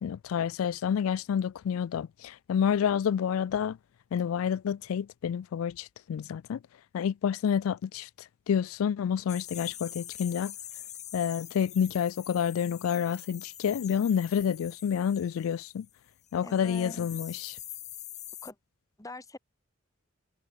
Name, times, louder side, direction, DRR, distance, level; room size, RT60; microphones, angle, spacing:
voice 1, 0.0-3.8 4.1-6.6 6.9-8.1 8.5-10.5 11.1-15.9 16.3-17.6, left 8 dB, 85° left, 0.3 m, -29 dB
sound 1, 9.3-16.0 16.2-18.5, left 11 dB, 35° left, 2.5 m, -45 dB
voice 2, 16.4-17.4 18.4-18.6 19.0-19.4, left 2 dB, 15° left, 1.8 m, -44 dB
head